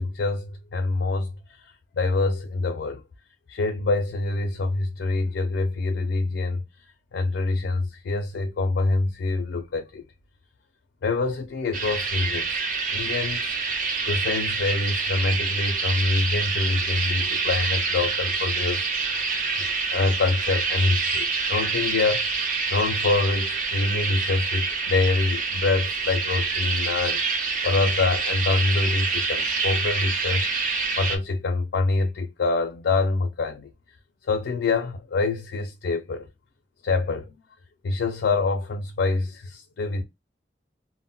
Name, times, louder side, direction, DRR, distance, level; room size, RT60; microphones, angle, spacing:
voice 1, 0.0-1.6 2.0-3.0 3.5-6.6 7.1-10.0 11.0-12.5 12.9-13.5 14.1-18.9 19.6-22.3 22.7-27.2 27.6-30.5 31.0-33.7 34.2-36.3 36.8-37.3 37.8-40.0, left 3 dB, 75° left, 0.4 m, -25 dB
sound 1, 11.7-31.2, right 4 dB, 50° right, 0.6 m, -26 dB
2.0 x 2.0 x 3.7 m
head